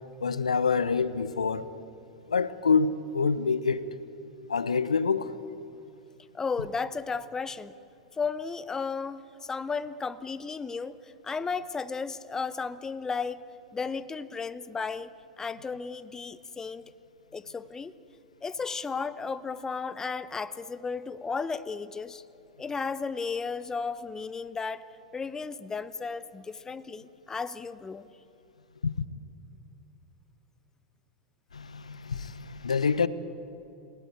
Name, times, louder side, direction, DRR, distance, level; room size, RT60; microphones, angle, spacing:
voice 1, 0.2-1.7 2.3-3.9 4.5-5.3 28.8-29.0 31.5-33.1, left 5 dB, 85° left, 0.9 m, -26 dB
voice 2, 6.3-7.7 8.1-13.4 13.7-16.9 17.3-17.9 18.4-22.2 22.6-24.8 25.1-28.1, left 5 dB, 15° left, 0.8 m, -34 dB
28.0 x 18.0 x 9.3 m
figure-of-eight pair, 90°, 3 cm